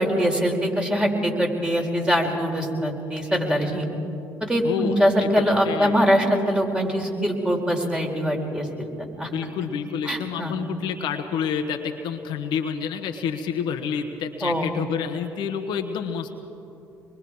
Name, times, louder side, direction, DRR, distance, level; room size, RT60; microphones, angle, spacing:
voice 1, 0.0-3.9 4.4-9.3 10.1-10.5 14.4-14.7, equal, 10° right, 1 dB, 4.2 m, -23 dB
voice 2, 4.6-4.9 5.2-6.0 9.3-16.4, left 7 dB, 70° left, 5 dB, 1.3 m, -29 dB
25.0 x 22.0 x 4.8 m, 2.9 s
hypercardioid pair, 55°, 8 cm